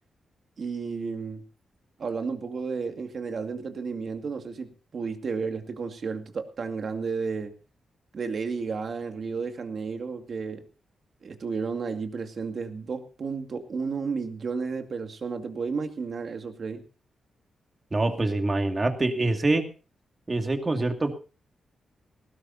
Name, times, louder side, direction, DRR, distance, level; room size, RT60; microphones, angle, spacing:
voice 1, 0.6-1.4 2.0-7.5 8.1-10.6 11.2-16.8, right 5 dB, 50° right, 6 dB, 2.2 m, -32 dB
voice 2, 17.9-19.7 20.3-21.1, right 2 dB, 25° right, 5 dB, 2.3 m, -25 dB
19.0 x 17.0 x 2.8 m, 0.35 s
cardioid pair, 115°, 0 cm